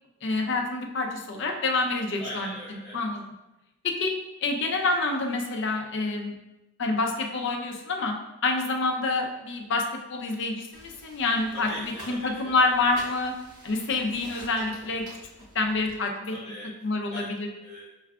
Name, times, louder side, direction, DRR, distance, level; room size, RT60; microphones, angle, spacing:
voice 1, 0.2-2.5 2.9-3.2 3.8-4.1 4.4-6.3 6.8-8.1 8.4-9.8 10.1-13.3 13.6-15.0 15.5-16.3 16.8-17.5, left 3 dB, 55° left, 2 dB, 0.5 m, -27 dB
voice 2, 2.2-3.1 11.5-13.1 16.3-16.8 17.1-17.8, equal, 5° left, -16 dB, 1.2 m, -41 dB
sound 1, 10.7-16.0, right 1 dB, 50° right, 1.1 m, -47 dB
5.5 x 2.3 x 2.3 m, 0.99 s
head